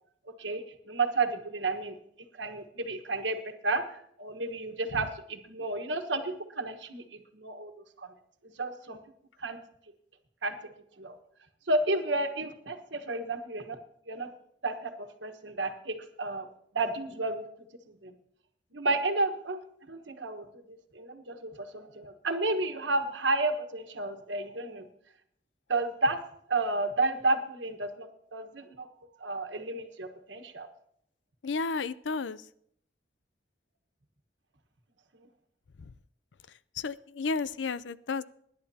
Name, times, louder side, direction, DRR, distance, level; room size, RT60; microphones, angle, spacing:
voice 1, 0.4-2.0 2.3-7.7 8.0-8.1 8.6-9.0 9.4-9.6 10.4-10.5 11.0-11.2 11.7-13.8 14.1-14.3 14.6-16.5 16.7-17.5 17.9-18.1 18.7-24.9 25.7-26.2 26.5-28.9 29.2-30.7 35.2-35.3, right 2 dB, 90° right, 6 dB, 1.4 m, -32 dB
voice 2, 31.4-32.4 36.8-38.2, left 4 dB, 90° left, 17 dB, 0.5 m, -32 dB
25.5 x 11.0 x 2.8 m, 0.71 s
head